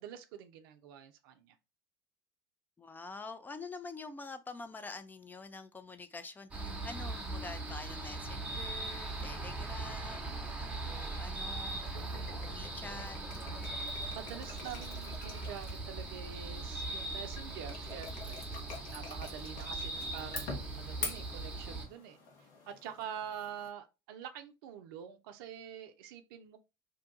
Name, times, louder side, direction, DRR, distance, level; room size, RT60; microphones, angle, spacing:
voice 1, 0.0-1.6 11.9-12.4 14.1-18.4 18.9-26.6, right 9 dB, 70° right, 0.5 m, -46 dB
voice 2, 2.8-11.8 12.3-13.7, left 3 dB, 15° left, 0.5 m, -47 dB
sound 1, 6.5-21.9, right 2 dB, 10° right, 0.9 m, -40 dB
sound 2, 11.0-23.7, left 4 dB, 70° left, 1.1 m, -47 dB
2.7 x 2.3 x 3.8 m
hypercardioid pair, 80°, 12 cm